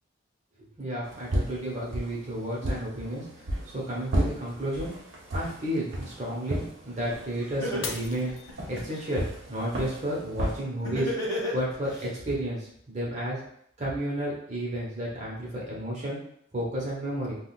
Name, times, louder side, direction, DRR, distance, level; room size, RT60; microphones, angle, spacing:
voice 1, 0.8-3.2 3.7-4.9 5.3-8.3 8.7-11.1 11.5-13.4 13.8-16.2 16.5-17.4, right 1 dB, 35° right, -5 dB, 1.0 m, -32 dB
sound 1, 1.0-10.6, equal, 75° right, 0.8 m, -34 dB
Laughter, 7.1-7.2 7.6-9.1 10.8-12.0, left 1 dB, 20° left, 1.2 m, -31 dB
Shatter, 7.8-9.1 9.6-10.1 10.6-10.7, left 6 dB, 90° left, 0.4 m, -39 dB
3.6 x 2.4 x 2.4 m, 0.69 s
head